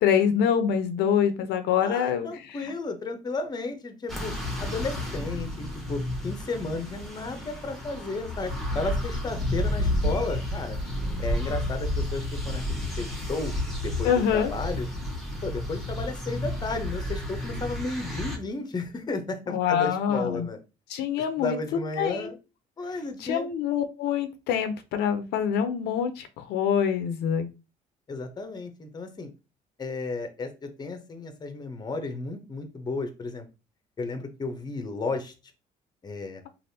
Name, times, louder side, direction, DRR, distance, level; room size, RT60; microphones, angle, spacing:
voice 1, 0.0-2.7 14.0-14.5 19.5-20.5 20.9-21.6 22.0-22.3 23.2-27.5, left 8 dB, 80° left, 9 dB, 0.5 m, -25 dB
voice 2, 1.8-4.3 4.6-10.8 11.2-13.5 13.8-14.9 15.4-20.6 21.4-22.4 22.8-23.5 28.1-29.3 29.8-33.4 34.0-35.3 36.0-36.4, left 3 dB, 25° left, 7 dB, 0.7 m, -33 dB
sound 1, 4.1-18.4, left 1 dB, ahead, 1.0 m, -31 dB
3.3 x 2.5 x 2.7 m, 0.29 s
cardioid pair, 110°, 17 cm